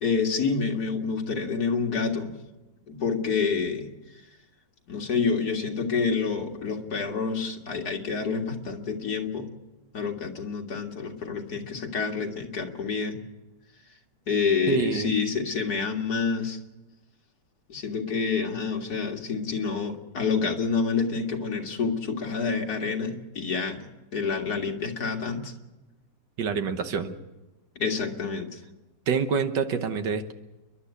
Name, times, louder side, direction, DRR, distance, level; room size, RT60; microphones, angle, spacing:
voice 1, 0.0-2.4 2.9-3.9 4.9-9.5 9.9-13.2 14.3-16.6 17.7-23.8 24.1-25.5 27.8-28.6, left 5 dB, 65° left, 1 dB, 2.5 m, -28 dB
voice 2, 14.7-15.1 26.4-27.1 29.1-30.3, right 5 dB, 85° right, 8 dB, 1.9 m, -26 dB
29.5 x 11.5 x 8.3 m, 1.1 s
omnidirectional pair, 1.8 m